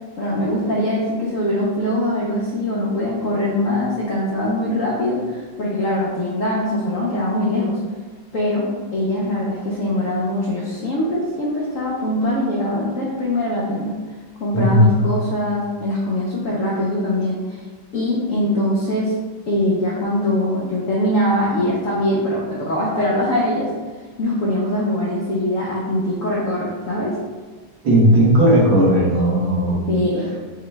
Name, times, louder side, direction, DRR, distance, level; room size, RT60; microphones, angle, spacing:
voice 1, 0.2-7.8 8.3-8.6 8.9-14.0 14.4-17.6 17.9-19.1 19.4-23.7 24.2-27.1 29.9-30.3, left 1 dB, 70° left, -5 dB, 0.7 m, -22 dB
voice 2, 14.5-14.9 27.8-29.8, equal, 75° right, -6 dB, 2.0 m, -15 dB
6.0 x 2.3 x 3.2 m, 1.4 s
omnidirectional pair, 2.2 m